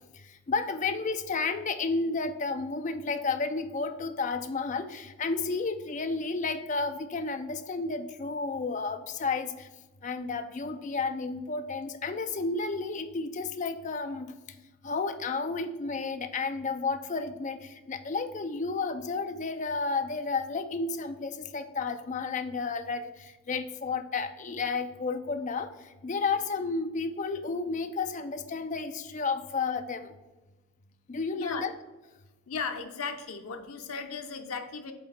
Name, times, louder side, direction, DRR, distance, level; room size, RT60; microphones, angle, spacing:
voice 1, 0.1-9.7 10.0-14.3 14.8-25.7 26.0-30.1 31.1-31.7, left 4 dB, 35° left, 8 dB, 0.4 m, -32 dB
voice 2, 32.5-34.9, left 5 dB, 80° left, 6 dB, 0.7 m, -36 dB
7.8 x 4.2 x 4.0 m, 1.1 s
head